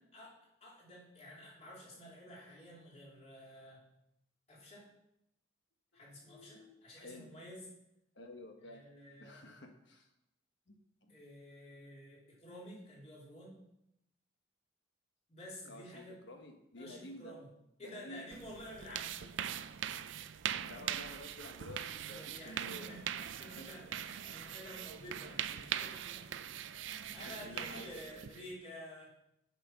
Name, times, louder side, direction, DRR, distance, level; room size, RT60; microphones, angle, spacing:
voice 1, 0.6-3.8 4.5-4.9 5.9-7.7 8.6-9.4 11.1-13.6 15.3-16.2 16.8-17.5 17.8-19.2 22.2-26.3 26.6-29.1, equal, 35° left, -5 dB, 3.0 m, -51 dB
voice 2, 6.2-7.3 8.1-8.9 9.2-10.1 10.7-11.1 15.7-17.4 17.8-18.2 19.2-19.3 20.7-23.0 23.6-23.7 26.8-28.3, left 1 dB, 65° left, 4 dB, 1.3 m, -51 dB
sound 1, 18.3-28.5, right 10 dB, 75° right, 0.4 m, -41 dB
8.2 x 5.9 x 5.9 m, 0.81 s
head